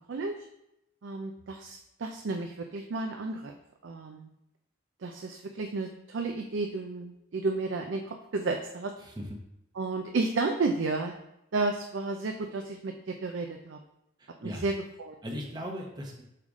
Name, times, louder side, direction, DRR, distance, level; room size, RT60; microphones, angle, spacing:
voice 1, 1.0-3.6 3.8-4.3 5.0-8.9 9.8-11.1 11.5-13.8 14.4-15.2, right 3 dB, 70° right, 4 dB, 0.5 m, -32 dB
voice 2, 9.0-9.4 14.2-14.6 15.2-16.2, equal, 20° right, 0 dB, 0.9 m, -38 dB
5.7 x 4.8 x 3.6 m, 0.85 s
head